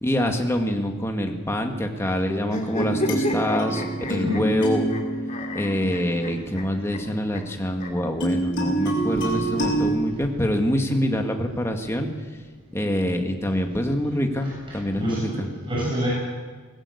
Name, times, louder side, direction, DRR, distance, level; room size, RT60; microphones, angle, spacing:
voice 1, 0.0-3.8 4.1-5.0 5.5-12.1 12.7-15.5, equal, 10° left, 3 dB, 1.9 m, -25 dB
sound 1, 2.4-5.0 5.3-6.6 6.9-7.0 7.3-7.4 7.8-7.9 9.0-10.0, left 2 dB, 35° left, 2.3 m, -33 dB
sound 2, 2.7-7.0 8.2-10.0, right 1 dB, 55° left, 7.8 m, -27 dB
voice 2, 14.9-16.1, right 1 dB, 25° right, -6 dB, 7.1 m, -28 dB
20.0 x 16.5 x 8.5 m, 1.4 s
head